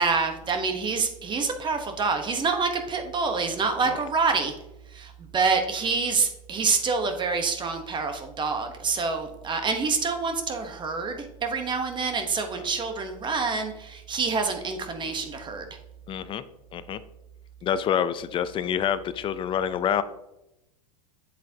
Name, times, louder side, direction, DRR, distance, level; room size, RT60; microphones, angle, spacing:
voice 1, 0.0-4.5 4.9-15.7, right 4 dB, 25° right, 6 dB, 1.0 m, -27 dB
voice 2, 16.1-16.4 16.7-17.0 17.6-20.0, left 9 dB, 25° left, 14 dB, 0.4 m, -27 dB
7.7 x 7.6 x 2.8 m, 0.89 s
hypercardioid pair, 110°, 20 cm